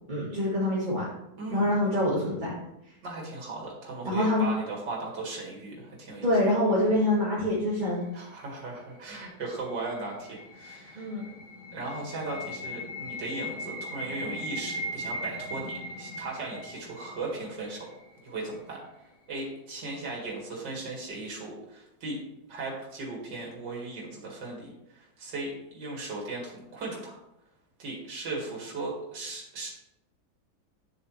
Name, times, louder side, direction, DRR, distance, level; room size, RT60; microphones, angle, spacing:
voice 1, 0.1-1.1 1.5-2.5 4.0-4.5 6.2-8.0 11.0-11.3, left 1 dB, 30° right, -8 dB, 1.7 m, -25 dB
voice 2, 1.4-1.8 3.0-6.3 8.1-11.1 11.7-17.9 18.2-18.8 19.3-22.2 22.5-27.2 27.8-29.7, right 2 dB, 85° right, -2 dB, 2.7 m, -37 dB
sound 1, 9.2-18.2, equal, 80° left, 2.3 m, -39 dB
9.3 x 7.0 x 3.2 m, 0.87 s
omnidirectional pair, 1.9 m